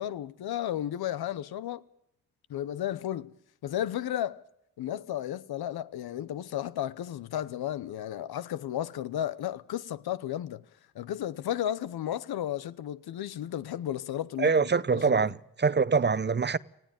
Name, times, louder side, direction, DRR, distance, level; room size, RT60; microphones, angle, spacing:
voice 1, 0.0-1.8 2.5-3.3 3.6-4.4 4.8-10.6 10.9-14.5 14.9-15.2, left 11 dB, 80° left, 0.9 m, -33 dB
voice 2, 14.4-16.6, right 5 dB, 30° right, 0.7 m, -24 dB
19.5 x 15.0 x 9.1 m
cardioid pair, 65°, 37 cm